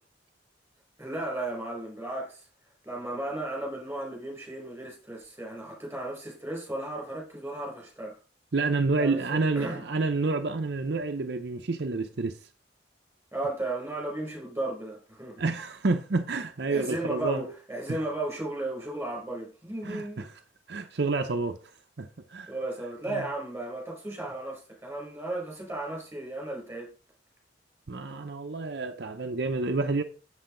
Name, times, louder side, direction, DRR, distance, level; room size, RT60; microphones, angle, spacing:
voice 1, 1.0-2.5 2.8-8.2 9.0-9.8 13.3-15.4 16.7-20.3 22.5-26.9, right 2 dB, 10° right, 4.5 m, -35 dB
voice 2, 8.5-12.5 15.4-17.5 17.9-18.0 19.8-20.3 20.7-21.6 22.0-22.5 23.1-23.3 27.9-30.0, right 3 dB, 60° right, 0.7 m, -29 dB
7.7 x 7.7 x 3.8 m
head